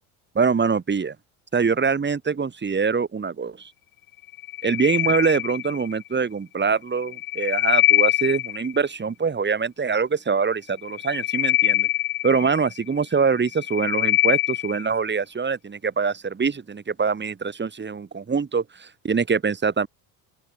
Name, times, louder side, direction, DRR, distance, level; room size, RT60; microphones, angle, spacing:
voice 1, 0.4-1.2 1.5-3.7 4.6-11.9 12.2-19.9, right 5 dB, 25° right, 3.8 m, -24 dB
sound 1, 4.3-6.0 7.0-8.8 10.8-12.9 13.4-14.9, left 16 dB, 50° left, 1.2 m, -23 dB
open air
hypercardioid pair, 85°, 45 cm